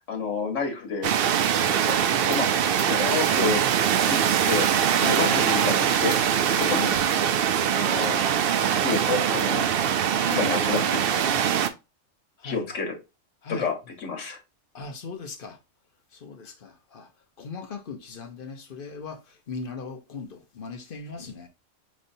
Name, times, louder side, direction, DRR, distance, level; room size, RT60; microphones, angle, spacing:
voice 1, 0.1-1.1 1.6-2.0 2.2-3.6 4.1-4.2 4.4-4.7 5.1-6.2 6.6-6.9 7.6-8.3 8.7-9.7 10.2-11.0 12.4-13.0 13.5-14.4, left 5 dB, 85° left, 1.5 m, -29 dB
sound 1, 1.0-11.7, right 8 dB, 60° right, 0.6 m, -23 dB
voice 2, 5.0-5.4 6.5-6.8 12.4-12.7 13.4-13.7 14.7-15.6 16.1-17.1 17.4-21.5, left 4 dB, 50° left, 0.9 m, -38 dB
5.3 x 3.1 x 2.6 m
omnidirectional pair, 1.3 m